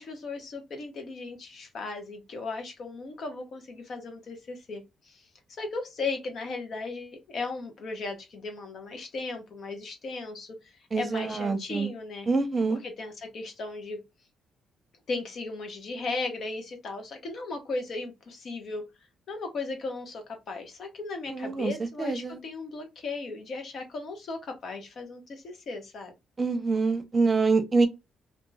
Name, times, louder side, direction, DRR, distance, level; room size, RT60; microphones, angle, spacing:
voice 1, 0.0-5.2 5.6-10.6 10.9-12.3 12.7-14.0 15.1-18.8 19.3-26.1, left 3 dB, 55° left, 1.1 m, -36 dB
voice 2, 10.9-11.9 12.3-12.8 21.3-21.7 22.0-22.4 26.4-27.9, right 4 dB, 35° right, 0.7 m, -25 dB
3.0 x 2.7 x 2.3 m
cardioid pair, 90°, 0 cm